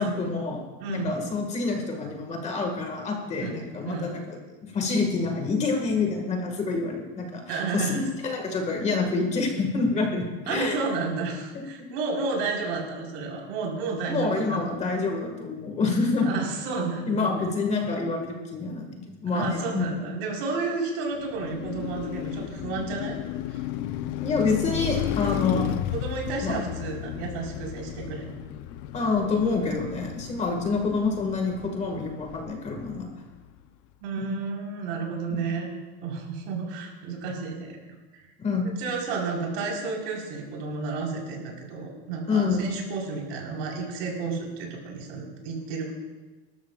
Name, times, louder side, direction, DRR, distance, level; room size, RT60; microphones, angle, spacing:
voice 1, 0.0-0.6 0.9-10.8 11.5-11.9 14.1-16.4 17.1-19.9 24.2-25.8 26.4-26.7 28.9-33.1 34.2-34.4 38.4-38.7 42.3-42.7, left 4 dB, 20° left, 2 dB, 1.8 m, -27 dB
voice 2, 0.8-1.1 3.4-3.6 3.9-4.1 7.5-8.0 10.5-14.6 16.2-17.3 19.3-23.2 23.5-23.7 25.9-28.4 34.0-35.7 36.0-37.8 38.1-38.3 38.6-45.9, right 4 dB, 65° right, -1 dB, 4.3 m, -31 dB
Car passing by, 21.1-33.4, left 12 dB, 45° left, 0.7 m, -34 dB
25.0 x 13.0 x 2.4 m, 1.2 s
supercardioid pair, 165°, 32 cm